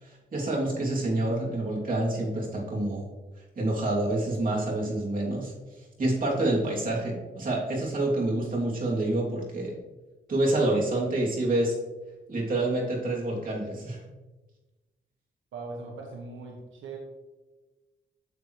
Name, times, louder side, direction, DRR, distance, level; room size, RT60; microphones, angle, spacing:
voice 1, 0.0-3.1 3.6-5.5 6.0-9.8 10.3-11.8 12.3-14.0, right 2 dB, 45° right, -3 dB, 2.9 m, -27 dB
voice 2, 15.5-17.0, right 3 dB, 90° right, 0 dB, 1.2 m, -40 dB
9.5 x 7.0 x 3.2 m, 1.2 s
cardioid pair, 105°, 20 cm